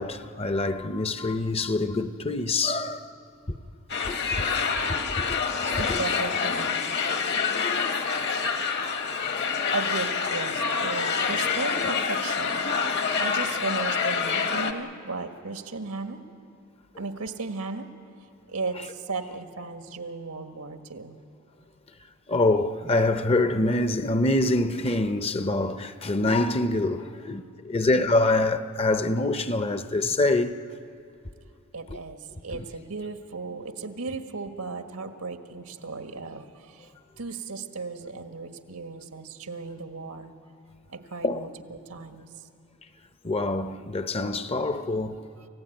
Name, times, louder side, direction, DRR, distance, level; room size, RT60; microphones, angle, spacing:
voice 1, 0.0-3.2 3.5-3.6 4.0-4.5 4.9-6.0 7.5-8.4 8.7-9.5 22.3-30.6 31.9-32.0 32.5-32.7 41.2-41.5 43.2-45.2, left 2 dB, 25° left, 0.7 m, -26 dB
sound 1, 3.9-14.7, left 5 dB, 50° left, 1.1 m, -27 dB
voice 2, 5.8-6.9 9.7-12.6 13.2-16.2 16.9-17.9 18.5-21.2 31.7-40.3 40.9-42.3, right 3 dB, 90° right, 1.6 m, -35 dB
28.5 x 15.5 x 9.1 m
head